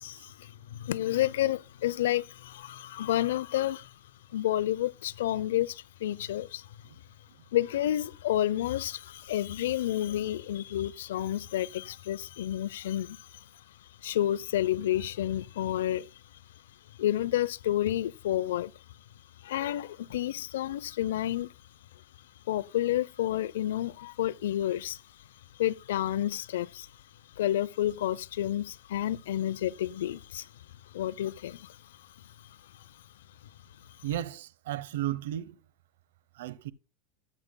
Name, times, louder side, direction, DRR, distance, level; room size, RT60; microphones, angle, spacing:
voice 1, 0.0-3.9 4.3-6.7 7.5-13.4 14.0-16.1 17.0-18.7 19.4-21.5 22.5-25.0 25.6-26.9 27.4-30.5 30.9-31.8, left 13 dB, 85° left, 0.6 m, -30 dB
voice 2, 34.0-35.6 36.4-36.7, right 13 dB, 80° right, 0.8 m, -34 dB
13.0 x 9.5 x 2.3 m
supercardioid pair, 140°, 0 cm